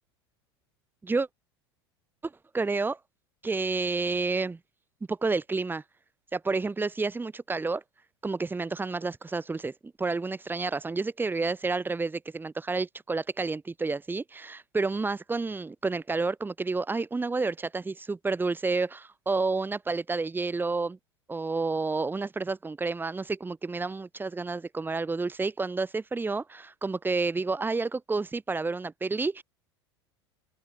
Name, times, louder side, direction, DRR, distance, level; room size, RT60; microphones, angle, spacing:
voice 1, 2.5-3.0 3.4-4.6 5.1-5.8 6.3-7.8 8.2-21.0 21.3-29.4, right 3 dB, 15° right, 4.8 m, -30 dB
open air
figure-of-eight pair, 80°, 14 cm